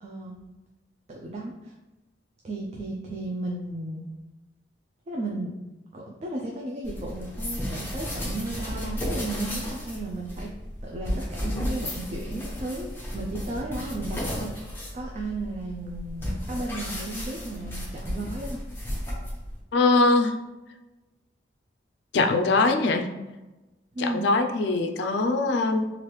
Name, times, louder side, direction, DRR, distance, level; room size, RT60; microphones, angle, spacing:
voice 1, 0.0-0.3 1.1-1.7 2.4-4.0 5.1-5.5 5.9-10.5 10.8-14.5 14.9-18.6 23.9-24.3, right 2 dB, 35° right, -2 dB, 0.3 m, -34 dB
sound 1, 6.8-19.6, equal, 10° left, 0.6 m, -33 dB
voice 2, 19.7-20.3 22.1-23.1 24.0-25.9, left 3 dB, 70° left, 5 dB, 0.3 m, -22 dB
3.1 x 2.4 x 3.1 m, 1.1 s
head